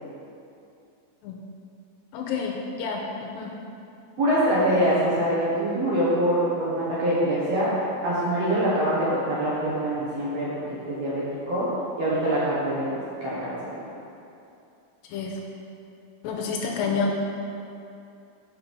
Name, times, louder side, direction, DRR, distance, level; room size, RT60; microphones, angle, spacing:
voice 1, 2.1-3.5 15.1-15.4 16.2-17.3, left 4 dB, 80° left, 0 dB, 2.3 m, -29 dB
voice 2, 4.2-7.7 8.0-10.5 10.8-11.7 12.0-13.5, right 1 dB, 65° right, -9 dB, 1.7 m, -24 dB
6.0 x 5.9 x 5.2 m, 2.7 s
omnidirectional pair, 4.2 m